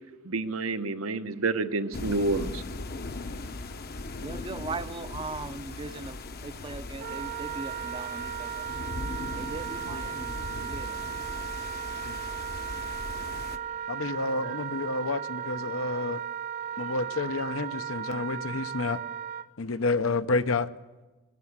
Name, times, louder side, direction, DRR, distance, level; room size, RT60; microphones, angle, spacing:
voice 1, 0.2-2.6, right 3 dB, 90° right, 1.0 m, -29 dB
sound 1, 1.9-13.6, left 3 dB, 50° left, 0.9 m, -39 dB
voice 2, 4.2-8.7 9.4-11.0, right 3 dB, 25° right, 0.6 m, -39 dB
Wind instrument woodwind instrument, 7.0-19.5, right 9 dB, 50° right, 0.9 m, -36 dB
voice 3, 13.9-16.2 16.8-19.0 19.6-20.7, left 3 dB, 75° left, 0.8 m, -29 dB
21.5 x 13.0 x 9.7 m
head